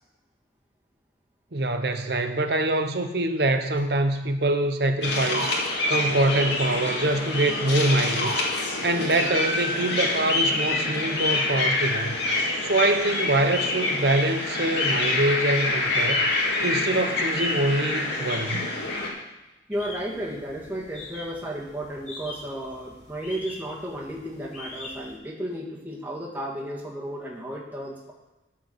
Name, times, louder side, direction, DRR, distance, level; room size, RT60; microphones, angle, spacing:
voice 1, 1.5-5.5 5.9-8.4 8.8-12.2 12.6-16.3 16.6-18.7, right 2 dB, 60° right, 8 dB, 0.9 m, -24 dB
sound 1, 5.0-19.1, left 2 dB, 70° left, 2.1 m, -26 dB
sound 2, 19.7-25.1, left 2 dB, 40° left, 3.4 m, -43 dB
voice 2, 19.7-28.1, right 1 dB, 10° right, -5 dB, 1.7 m, -33 dB
13.0 x 4.6 x 6.7 m, 1.1 s
head